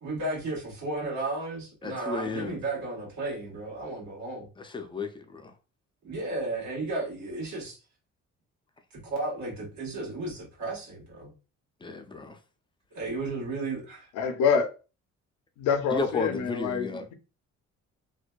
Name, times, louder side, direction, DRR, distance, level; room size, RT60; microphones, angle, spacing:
voice 1, 0.0-4.5 6.0-7.8 9.0-11.3 12.9-14.1, right 2 dB, 70° right, 1.4 m, -34 dB
voice 2, 1.8-2.6 4.6-5.5 11.8-12.4 15.9-17.1, left 3 dB, 15° left, 0.4 m, -33 dB
voice 3, 14.1-14.7 15.6-17.1, left 6 dB, 85° left, 0.5 m, -26 dB
2.6 x 2.2 x 2.2 m
cardioid pair, 90°, 30 cm